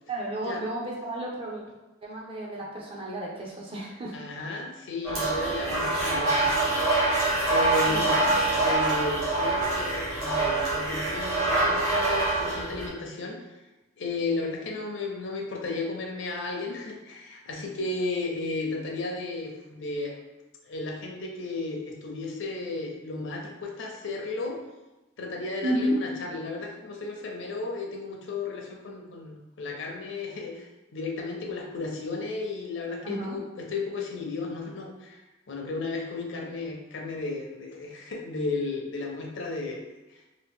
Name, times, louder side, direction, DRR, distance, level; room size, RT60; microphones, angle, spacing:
voice 1, 0.1-1.6 2.0-4.2 7.8-8.3 25.6-25.9 33.0-33.4, right 1 dB, 25° right, -4 dB, 0.5 m, -32 dB
voice 2, 4.1-6.5 7.5-8.2 8.5-13.4 14.0-20.1 20.7-24.6 25.2-40.2, left 3 dB, 60° left, 0 dB, 0.6 m, -34 dB
sound 1, 5.0-12.9, right 2 dB, 80° right, 1.1 m, -25 dB
2.8 x 2.6 x 3.5 m, 1.1 s
head